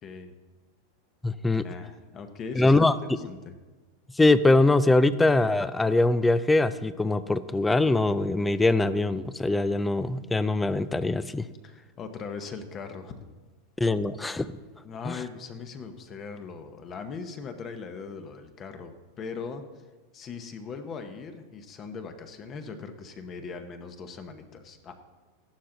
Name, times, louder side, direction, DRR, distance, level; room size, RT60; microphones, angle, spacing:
voice 1, 0.0-0.3 1.5-2.9 3.2-3.5 11.6-13.2 14.8-18.9 19.2-19.6 20.1-24.9, left 5 dB, 20° left, 7 dB, 0.9 m, -40 dB
voice 2, 1.2-1.6 2.6-2.9 4.2-11.4 13.8-14.5 15.1-15.2, left 2 dB, 5° left, 14 dB, 0.4 m, -22 dB
14.5 x 11.5 x 3.8 m, 1.2 s
supercardioid pair, 170°, 0 cm